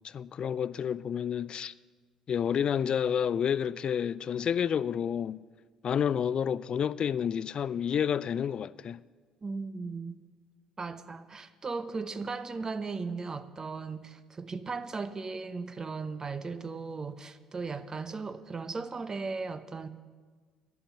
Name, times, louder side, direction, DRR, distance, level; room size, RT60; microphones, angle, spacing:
voice 1, 0.0-1.7 2.3-5.4 5.8-9.0, left 8 dB, 45° left, 0.4 m, -29 dB
voice 2, 9.4-10.2 10.8-19.9, right 4 dB, 30° right, 0.9 m, -37 dB
11.0 x 7.1 x 9.3 m
hypercardioid pair, 50°, 2 cm